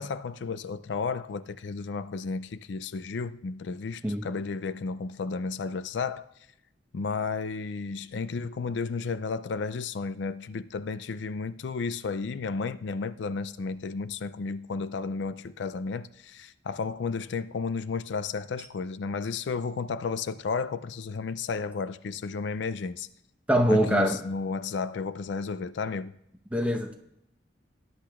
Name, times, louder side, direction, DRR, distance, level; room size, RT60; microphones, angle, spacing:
voice 1, 0.0-6.3 6.9-23.1 23.7-26.1, left 4 dB, 80° left, 0.4 m, -33 dB
voice 2, 23.5-24.2 26.5-26.9, equal, 5° right, 0.9 m, -23 dB
19.0 x 10.0 x 2.4 m
head